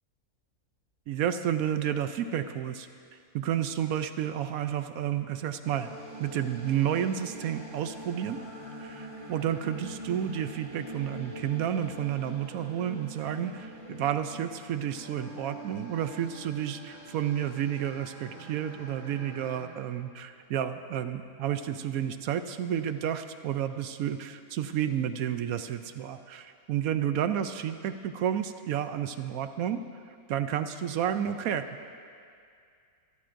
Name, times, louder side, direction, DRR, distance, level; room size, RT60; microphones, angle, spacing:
voice 1, 1.1-5.9 6.2-8.4 8.8-29.8 30.3-31.7, right 10 dB, 75° right, 10 dB, 1.0 m, -31 dB
sound 1, 5.6-19.6, right 1 dB, 25° right, 3.2 m, -44 dB
24.5 x 13.5 x 2.6 m, 2.3 s
omnidirectional pair, 1.6 m